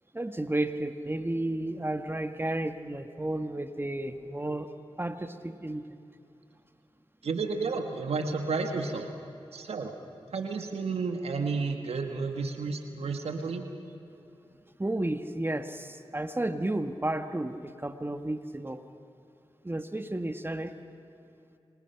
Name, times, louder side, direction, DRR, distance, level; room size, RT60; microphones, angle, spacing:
voice 1, 0.1-4.7 5.0-5.8 14.8-18.8 19.6-20.7, right 1 dB, 20° right, 8 dB, 1.6 m, -32 dB
voice 2, 7.2-9.1 9.5-9.9 10.3-13.6, right 4 dB, 80° right, 5 dB, 1.9 m, -31 dB
27.5 x 25.5 x 5.9 m, 2.8 s
cardioid pair, 40°, 10 cm